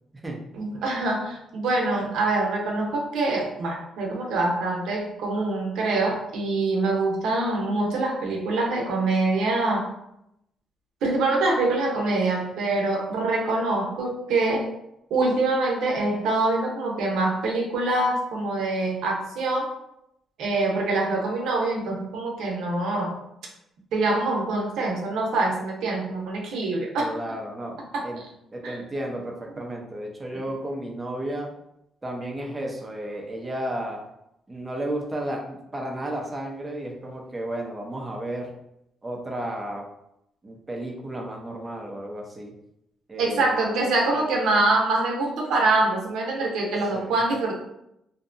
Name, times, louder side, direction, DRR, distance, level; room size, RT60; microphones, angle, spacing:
voice 1, 0.5-9.9 11.0-14.7 15.1-19.7 20.4-23.2 23.9-27.1 27.9-28.0 28.6-28.7 43.2-47.5, right 2 dB, 80° right, -1 dB, 0.7 m, -25 dB
voice 2, 27.0-28.2 28.5-31.5 32.0-34.0 34.5-38.5 39.0-39.9 40.4-42.5 43.1-43.5 44.2-44.3 46.9-47.2, right 1 dB, 20° right, 0 dB, 0.6 m, -33 dB
2.7 x 2.2 x 2.5 m, 0.80 s
cardioid pair, 90°, 0 cm